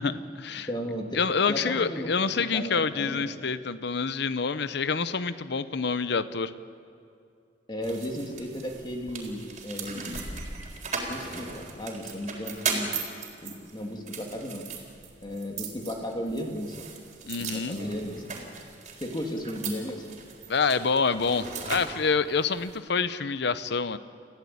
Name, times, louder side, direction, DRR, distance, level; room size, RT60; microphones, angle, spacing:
voice 1, 0.0-0.7 1.1-6.5 17.3-17.8 20.5-24.0, left 5 dB, 65° left, 14 dB, 0.8 m, -27 dB
voice 2, 0.7-1.2 1.5-3.3 7.7-10.0 11.1-12.9 13.4-14.6 15.2-16.9 17.2-18.2 19.0-20.0, equal, 25° left, 2 dB, 2.6 m, -35 dB
sound 1, 7.8-22.8, right 4 dB, 40° right, 4.0 m, -38 dB
28.5 x 15.0 x 8.6 m, 2.4 s
head